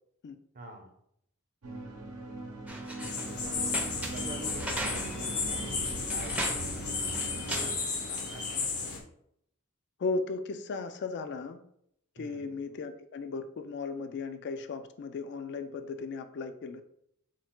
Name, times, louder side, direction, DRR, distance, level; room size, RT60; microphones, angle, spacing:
voice 1, 0.5-0.9 3.3-3.8 4.1-7.7 8.1-8.6 12.2-12.6, right 1 dB, 40° right, 4 dB, 0.7 m, -48 dB
sound 1, 1.6-7.7, right 2 dB, 80° right, 0.8 m, -40 dB
sound 2, 2.7-8.2, right 1 dB, 5° right, 0.5 m, -40 dB
sound 3, 3.0-9.0, left 4 dB, 80° left, 0.9 m, -34 dB
voice 2, 10.0-11.6 12.2-16.8, left 4 dB, 55° left, 10 dB, 0.3 m, -36 dB
4.4 x 2.4 x 4.3 m, 0.72 s
head